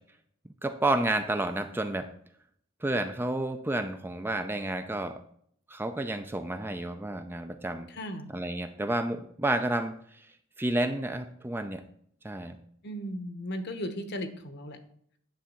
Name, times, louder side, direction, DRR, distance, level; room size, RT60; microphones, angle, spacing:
voice 1, 0.6-2.1 2.8-5.2 5.7-7.9 8.3-10.3 10.6-11.8 12.2-12.6, right 1 dB, 10° right, 8 dB, 0.5 m, -30 dB
voice 2, 7.9-8.3 12.8-14.8, equal, 55° left, 8 dB, 1.1 m, -36 dB
10.0 x 3.5 x 7.1 m, 0.65 s
head